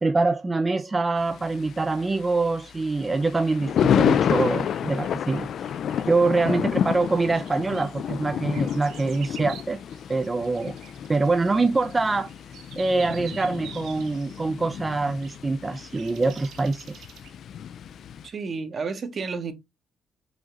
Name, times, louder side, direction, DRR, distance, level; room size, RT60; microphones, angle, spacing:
voice 1, 0.0-5.7 6.0-9.8 10.1-10.8 11.1-12.3 12.8-17.0, right 3 dB, 20° right, 0.4 m, -24 dB
Thunder, 1.2-18.3, left 8 dB, 65° left, 0.3 m, -29 dB
sound 1, 3.8-6.1 6.8-17.3, right 9 dB, 75° right, 0.6 m, -48 dB
voice 2, 18.2-19.5, right 4 dB, 50° right, 1.1 m, -32 dB
4.9 x 2.9 x 3.7 m
cardioid pair, 90°, 0 cm